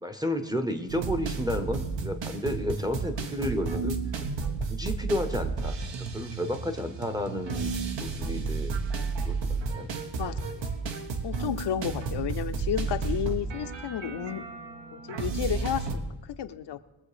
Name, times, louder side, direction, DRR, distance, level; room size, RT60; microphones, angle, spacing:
voice 1, 0.0-4.0 4.7-5.8 6.1-7.7 8.0-8.7 9.2-9.9, left 1 dB, 10° right, 5 dB, 0.8 m, -31 dB
sound 1, 0.9-16.0, right 4 dB, 75° right, 1.4 m, -32 dB
voice 2, 10.2-10.7 11.2-14.5 14.9-16.8, left 10 dB, 65° left, 9 dB, 0.7 m, -32 dB
21.0 x 7.5 x 5.0 m, 1.1 s
wide cardioid pair, 175°, 45 cm